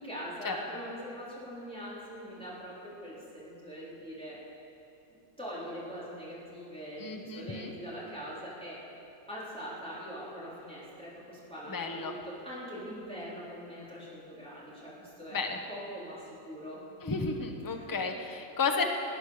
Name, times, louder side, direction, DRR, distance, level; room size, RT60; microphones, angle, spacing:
voice 1, 0.0-4.4 5.1-8.8 9.3-15.4 15.7-16.8 17.8-18.0, equal, 5° left, -9 dB, 3.9 m, -42 dB
voice 2, 7.0-7.7 11.7-12.1 15.3-15.6 17.0-18.8, left 4 dB, 20° left, 4 dB, 0.6 m, -32 dB
18.5 x 9.4 x 6.6 m, 2.8 s
omnidirectional pair, 2.0 m